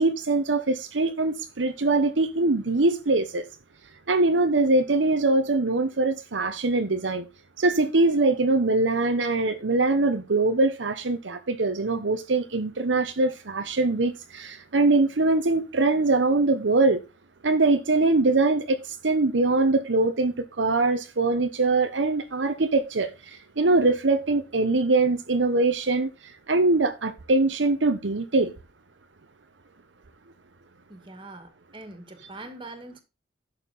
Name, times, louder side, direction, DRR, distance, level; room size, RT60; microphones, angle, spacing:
voice 1, 0.0-3.4 4.1-7.3 7.6-17.0 17.4-28.5, right 2 dB, 75° right, 0.9 m, -23 dB
voice 2, 30.9-33.0, right 2 dB, 25° right, 2.2 m, -43 dB
11.5 x 6.7 x 4.1 m
head